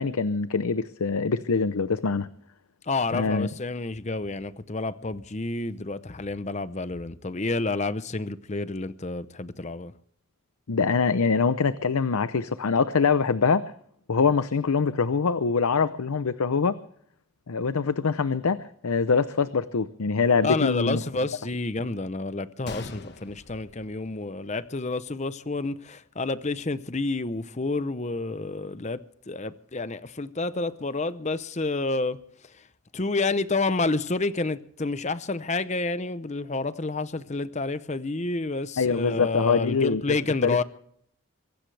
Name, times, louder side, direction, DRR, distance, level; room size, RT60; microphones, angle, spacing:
voice 1, 0.0-2.3 3.1-3.5 10.7-13.7 14.1-16.8 17.5-21.0 38.8-40.0 40.4-40.6, left 5 dB, 85° left, 0.7 m, -24 dB
voice 2, 2.8-9.9 20.4-32.2 32.5-32.6 32.9-40.6, left 3 dB, 30° left, 0.7 m, -29 dB
Gunshot gunfire, 22.7-24.7 25.0-25.1 25.7-26.0, left 3 dB, 50° left, 1.4 m, -43 dB
23.5 x 16.5 x 3.4 m
head